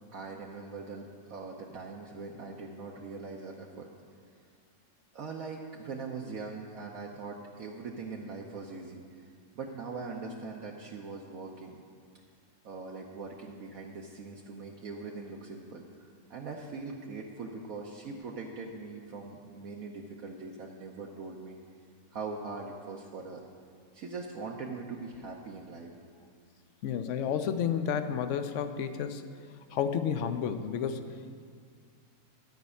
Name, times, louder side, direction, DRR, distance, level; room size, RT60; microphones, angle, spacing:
voice 1, 0.1-3.9 5.1-9.3 9.5-11.8 12.6-21.6 22.1-23.4 23.9-25.9, right 4 dB, 65° right, -1 dB, 1.2 m, -41 dB
voice 2, 26.8-29.2 29.7-31.1, left 8 dB, 60° left, 9 dB, 0.9 m, -31 dB
13.5 x 5.3 x 8.3 m, 2.1 s
omnidirectional pair, 1.7 m